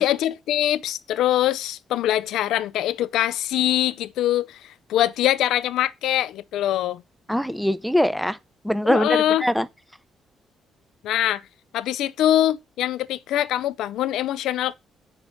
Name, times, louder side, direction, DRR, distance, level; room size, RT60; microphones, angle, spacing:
voice 1, 0.0-7.0 8.8-9.5 11.0-11.4 11.7-14.7, left 12 dB, 85° left, 0.5 m, -23 dB
voice 2, 7.3-8.4 8.6-9.7, equal, ahead, 0.5 m, -22 dB
6.3 x 5.2 x 6.1 m
cardioid pair, 90°, 0 cm